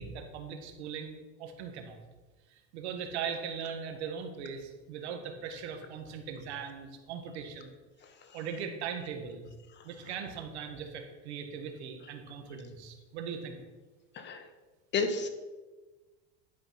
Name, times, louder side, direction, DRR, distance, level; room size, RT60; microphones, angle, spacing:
voice 1, 0.0-2.0 2.5-7.7 8.3-9.5 9.8-13.6, right 6 dB, 90° right, 5 dB, 1.7 m, -39 dB
voice 2, 14.9-15.3, left 4 dB, 35° left, 8 dB, 1.2 m, -30 dB
11.5 x 5.3 x 5.9 m, 1.2 s
supercardioid pair, 125°, 32 cm